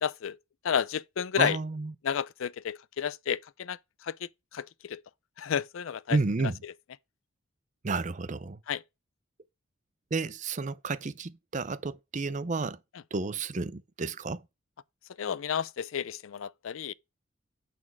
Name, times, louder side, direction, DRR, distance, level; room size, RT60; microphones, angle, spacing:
voice 1, 0.0-0.4 0.6-1.6 2.0-3.8 4.1-4.2 4.5-5.0 5.4-6.2 8.7-8.8 15.2-16.9, left 8 dB, 70° left, 0.4 m, -31 dB
voice 2, 1.4-1.9 6.1-6.6 7.8-8.6 10.1-12.8 13.1-14.4, right 3 dB, 35° right, 0.5 m, -31 dB
9.5 x 4.2 x 6.0 m
head